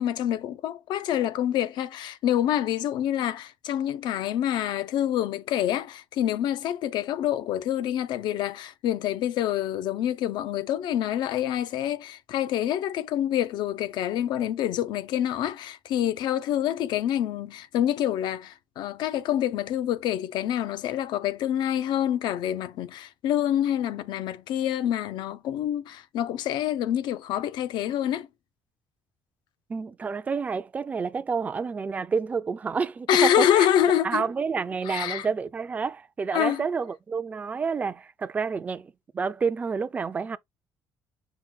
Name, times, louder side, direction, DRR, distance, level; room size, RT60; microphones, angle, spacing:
voice 1, 0.0-28.3 33.1-34.2 34.8-35.3 36.3-36.6, left 11 dB, 75° left, 0.5 m, -26 dB
voice 2, 29.7-33.7 34.0-40.4, right 5 dB, 20° right, 0.4 m, -29 dB
5.8 x 2.2 x 3.7 m
cardioid pair, 170°, 8 cm